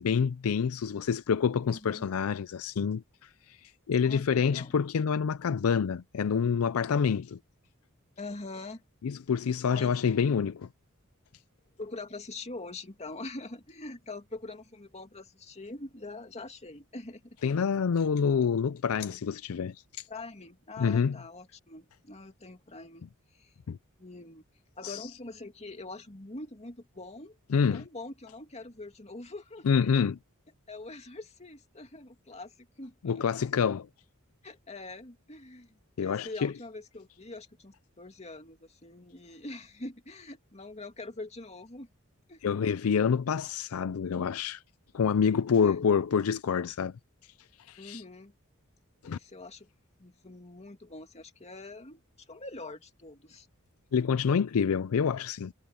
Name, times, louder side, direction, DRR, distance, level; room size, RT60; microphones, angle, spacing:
voice 1, 0.0-7.4 9.0-10.7 17.4-20.0 20.8-21.2 23.7-23.8 24.8-25.0 27.5-27.8 29.6-30.2 33.0-33.9 36.0-36.5 42.4-44.6 44.9-46.9 47.7-48.0 49.0-49.2 53.9-55.5, left 6 dB, 75° left, 0.4 m, -27 dB
voice 2, 1.7-2.1 4.0-4.8 8.2-8.8 9.7-10.3 11.8-17.4 20.1-23.1 23.3-23.5 24.0-24.4 24.8-27.4 27.7-29.7 30.7-33.2 34.4-35.7 36.0-41.9 42.3-42.4 45.5-45.8 47.8-48.3 49.0-49.7 50.0-52.0 52.3-53.5, left 2 dB, 30° left, 2.4 m, -44 dB
head